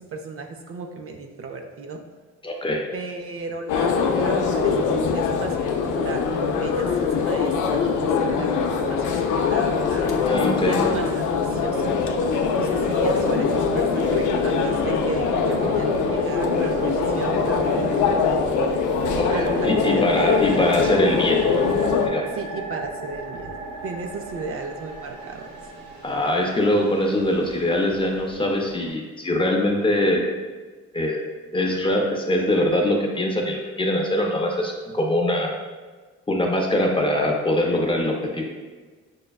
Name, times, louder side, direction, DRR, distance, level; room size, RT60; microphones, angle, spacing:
voice 1, 0.0-2.0 2.9-10.1 10.6-11.9 12.6-18.4 19.3-20.6 22.3-25.5, right 4 dB, 50° right, 4 dB, 0.5 m, -34 dB
voice 2, 2.4-2.9 10.3-10.8 19.2-21.4 22.1-22.3 26.0-30.3 30.9-31.2 31.5-35.5 36.3-38.5, left 1 dB, 15° left, 1 dB, 0.5 m, -22 dB
sound 1, 3.7-22.1, left 5 dB, 80° left, 0.5 m, -22 dB
sound 2, 9.9-10.6 10.9-28.9, right 3 dB, 75° right, 0.8 m, -34 dB
6.2 x 2.2 x 2.3 m, 1.4 s
cardioid pair, 90°, 30 cm